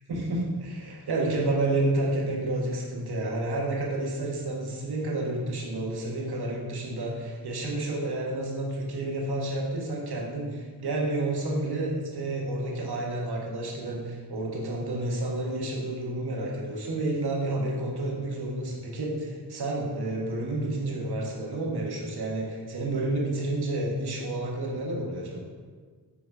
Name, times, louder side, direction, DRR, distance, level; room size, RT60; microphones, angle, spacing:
voice 1, 0.1-25.4, right 2 dB, 75° right, -1 dB, 1.3 m, -30 dB
7.1 x 2.9 x 4.8 m, 1.5 s
cardioid pair, 55°, 39 cm